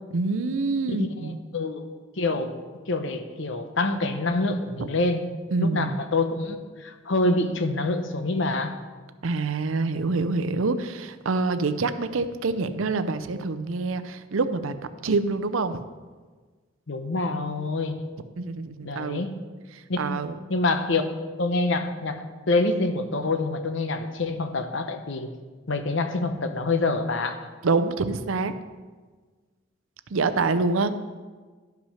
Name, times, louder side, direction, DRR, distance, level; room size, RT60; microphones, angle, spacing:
voice 1, 0.1-1.4 4.8-4.9 5.5-5.9 9.2-14.8 15.0-15.8 18.4-19.2 20.0-20.3 27.6-28.5 30.1-30.9, right 3 dB, 80° right, 10 dB, 0.6 m, -26 dB
voice 2, 0.9-1.8 2.2-2.5 2.9-5.2 5.6-8.8 16.9-18.0 18.8-19.4 19.9-20.2 20.5-21.1 21.4-25.3 25.7-27.4, left 2 dB, 65° left, 8 dB, 0.8 m, -26 dB
11.5 x 5.9 x 5.7 m, 1.4 s
head